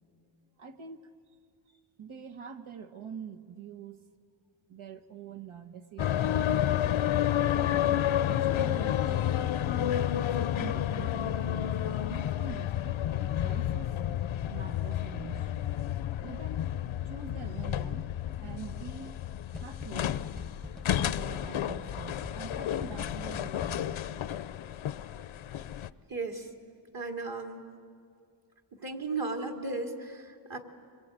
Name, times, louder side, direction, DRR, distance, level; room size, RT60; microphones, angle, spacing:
voice 1, 0.6-1.0 2.0-4.1 4.7-6.7 7.7-9.3 10.1-13.9 14.5-15.5 16.2-16.7 17.0-18.1 18.4-19.2 19.6-20.5 21.0-24.2, right 6 dB, 75° right, 7 dB, 1.6 m, -45 dB
sound 1, 6.0-25.9, left 11 dB, 75° left, 0.7 m, -31 dB
sound 2, 19.5-24.1, left 2 dB, ahead, 0.9 m, -46 dB
voice 2, 26.1-26.5 26.9-27.7 28.7-30.6, right 3 dB, 45° right, 4 dB, 2.7 m, -35 dB
26.0 x 22.5 x 9.1 m, 2.3 s
wide cardioid pair, 105°, 49 cm